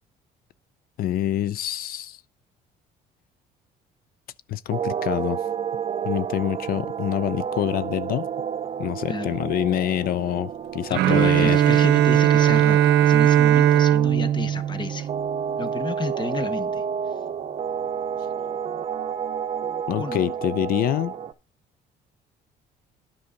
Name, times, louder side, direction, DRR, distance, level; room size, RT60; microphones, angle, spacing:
voice 1, 1.0-2.2 4.5-5.4 6.0-8.3 8.8-11.6 19.9-21.1, left 12 dB, 60° left, 0.4 m, -26 dB
sound 1, 4.7-21.3, right 8 dB, 40° right, 0.7 m, -31 dB
voice 2, 9.1-9.4 10.9-15.1 15.6-16.8 20.0-20.2, left 4 dB, 25° left, 1.0 m, -31 dB
Bowed string instrument, 10.9-15.8, right 11 dB, 80° right, 0.7 m, -19 dB
9.7 x 5.5 x 5.0 m
cardioid pair, 110°, 17 cm